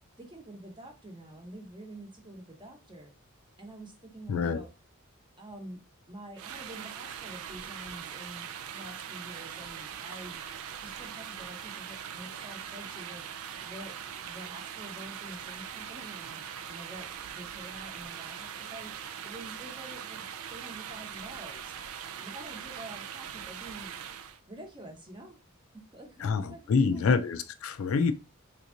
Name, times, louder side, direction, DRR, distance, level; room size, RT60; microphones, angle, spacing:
voice 1, 0.2-3.1 3.6-4.7 5.4-5.8 6.1-8.4 8.7-10.4 10.8-13.3 13.6-13.9 14.2-16.4 16.7-18.9 19.2-20.2 20.5-21.8 22.2-23.9 24.5-25.4 25.7-27.2, right 1 dB, 20° right, 0.8 m, -47 dB
voice 2, 4.3-4.6 26.2-28.1, left 5 dB, 75° left, 0.4 m, -26 dB
sound 1, 6.4-24.4, right 8 dB, 80° right, 0.4 m, -41 dB
3.6 x 2.9 x 2.5 m
head